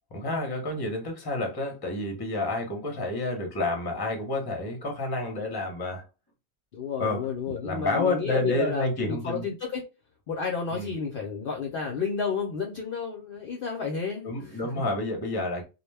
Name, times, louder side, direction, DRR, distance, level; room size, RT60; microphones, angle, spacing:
voice 1, 0.1-6.1 7.0-9.4 10.7-10.9 14.2-15.6, left 2 dB, 25° left, 0.6 m, -30 dB
voice 2, 6.7-9.8 10.3-14.6, left 5 dB, 60° left, 0.6 m, -31 dB
2.3 x 2.1 x 3.2 m
omnidirectional pair, 1.2 m